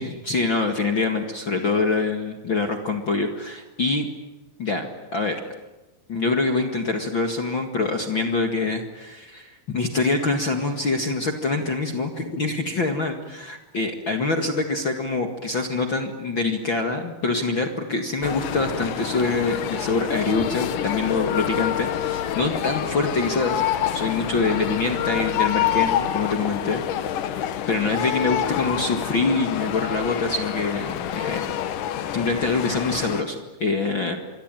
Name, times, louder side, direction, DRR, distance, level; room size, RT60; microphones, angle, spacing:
voice 1, 0.0-4.1 4.6-5.4 6.1-23.6 23.9-26.8 27.7-31.4 32.1-34.2, left 3 dB, 45° left, 4 dB, 1.6 m, -25 dB
sound 1, 18.2-33.2, left 10 dB, 65° left, 2.2 m, -27 dB
27.0 x 23.5 x 9.1 m, 1.0 s
omnidirectional pair, 5.2 m